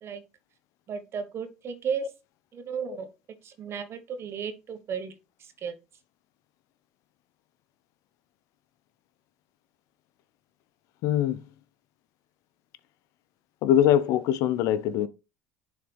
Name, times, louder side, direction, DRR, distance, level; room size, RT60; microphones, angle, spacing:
voice 1, 0.9-2.1 2.5-3.1 3.4-5.1 5.4-5.7, right 7 dB, 45° right, 1.3 m, -34 dB
voice 2, 11.0-11.4 13.6-15.1, left 11 dB, 65° left, 0.6 m, -23 dB
10.5 x 4.0 x 3.4 m
hypercardioid pair, 75°, 6 cm